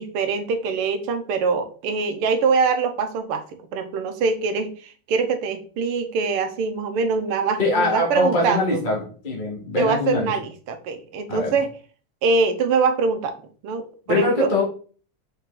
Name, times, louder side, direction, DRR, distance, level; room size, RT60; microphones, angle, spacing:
voice 1, 0.0-3.4 3.7-8.8 9.8-11.8 12.2-13.3 13.6-14.5, right 4 dB, 90° right, 7 dB, 1.9 m, -23 dB
voice 2, 7.6-10.3 11.3-11.5 14.1-14.6, left 2 dB, 25° left, -1 dB, 2.0 m, -22 dB
5.9 x 5.6 x 3.9 m, 0.40 s
omnidirectional pair, 2.4 m